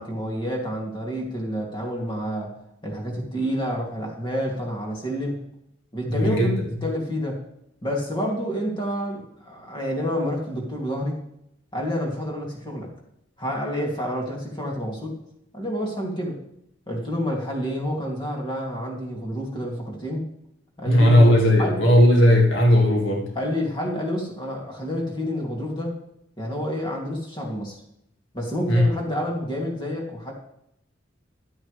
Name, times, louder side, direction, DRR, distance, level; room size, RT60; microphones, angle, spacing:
voice 1, 0.0-2.5 2.8-5.4 5.9-7.4 7.8-11.2 11.7-12.9 13.4-15.2 15.5-16.4 16.9-20.3 20.8-21.3 21.6-21.8 23.3-25.9 26.4-27.8 28.3-30.3, equal, 25° left, -1 dB, 2.6 m, -28 dB
voice 2, 6.1-6.5 20.9-23.3 28.7-28.8, left 1 dB, 75° left, 0 dB, 2.0 m, -16 dB
12.5 x 9.1 x 3.3 m, 0.77 s
head